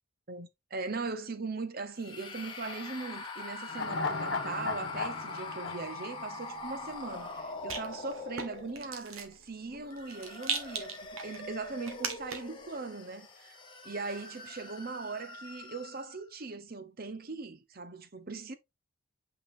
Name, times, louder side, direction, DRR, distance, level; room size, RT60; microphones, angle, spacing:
voice 1, 0.3-13.6 13.8-18.5, right 3 dB, 45° right, 0.8 m, -40 dB
sound 1, 2.0-9.0 9.7-16.2, left 3 dB, 20° left, 1.2 m, -44 dB
sound 2, 3.7-7.1 7.4-7.5, left 3 dB, 55° left, 1.3 m, -36 dB
Rattle, 6.5-12.6, right 5 dB, 80° right, 1.7 m, -41 dB
8.5 x 5.0 x 2.7 m
head